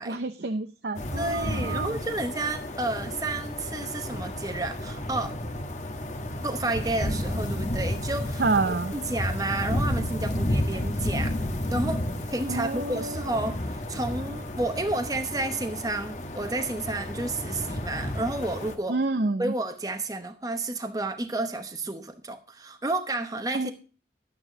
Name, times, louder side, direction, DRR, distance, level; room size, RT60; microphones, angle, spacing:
voice 1, 0.0-2.0 8.4-8.9 12.5-13.5 18.9-19.5 23.5-23.7, right 3 dB, 65° right, 0.7 m, -28 dB
sound 1, 0.9-18.7, left 1 dB, 40° left, 1.3 m, -32 dB
voice 2, 1.2-5.4 6.4-11.4 11.7-19.0 19.4-23.7, right 2 dB, 20° right, 0.9 m, -31 dB
12.0 x 9.0 x 3.9 m
head